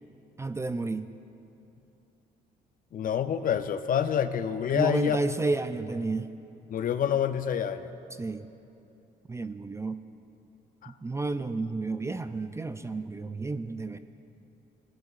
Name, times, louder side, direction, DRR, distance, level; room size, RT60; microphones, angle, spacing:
voice 1, 0.4-1.1 4.7-6.3 8.1-8.5 9.3-10.0 10.9-14.0, right 3 dB, 15° right, 10 dB, 0.3 m, -31 dB
voice 2, 2.9-5.2 6.7-7.9 10.8-10.9, left 9 dB, 55° left, 11 dB, 0.6 m, -27 dB
18.5 x 11.0 x 2.4 m, 2.9 s
cardioid pair, 90°, 17 cm